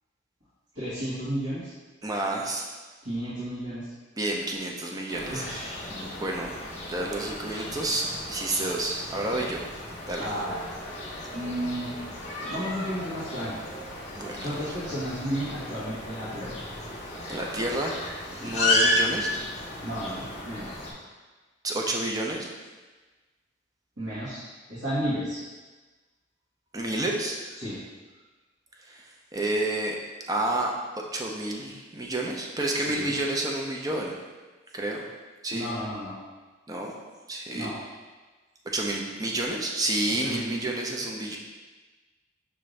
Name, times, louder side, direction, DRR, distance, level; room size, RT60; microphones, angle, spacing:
voice 1, 0.7-1.7 3.0-3.9 5.3-6.1 10.2-10.8 11.3-11.9 12.4-13.5 14.4-16.5 18.3-18.6 19.8-20.7 24.0-24.4 24.7-25.4 27.6-27.8 32.8-33.1 35.5-36.1 37.5-37.7 40.2-40.7, equal, 80° right, -13 dB, 1.5 m, -33 dB
voice 2, 2.0-2.7 4.2-5.4 6.1-6.5 6.9-9.6 10.1-10.3 14.1-14.6 17.3-18.1 18.4-19.4 21.6-22.5 26.7-27.6 28.8-29.0 29.3-30.0 30.3-34.1 34.7-35.0 35.4-35.7 36.7-36.9 37.3-37.7 38.7-41.4, right 2 dB, 20° right, 0 dB, 0.4 m, -30 dB
sound 1, 5.1-20.9, left 2 dB, 35° left, 0.6 m, -33 dB
5.7 x 2.6 x 3.2 m, 1.3 s
head